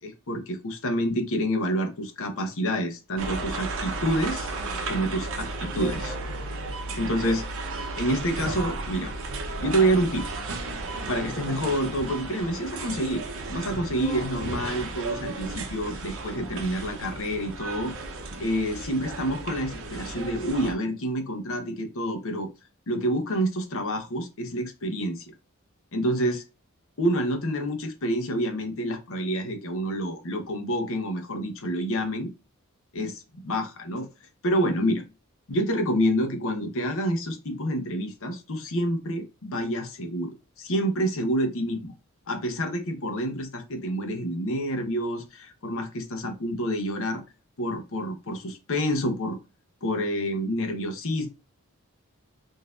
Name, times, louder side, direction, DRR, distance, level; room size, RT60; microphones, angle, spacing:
voice 1, 0.0-4.5 4.9-6.2 6.9-7.4 8.0-9.1 9.6-10.3 11.1-17.9 18.4-22.5 22.9-25.2 25.9-26.4 27.0-32.3 32.9-34.1 34.4-35.0 35.5-40.3 40.6-41.9 42.3-47.2 47.6-49.4 49.8-51.3, equal, 65° left, 5 dB, 0.8 m, -28 dB
sound 1, 3.2-20.7, right 3 dB, 65° right, 0.7 m, -34 dB
3.8 x 2.6 x 2.4 m, 0.30 s
head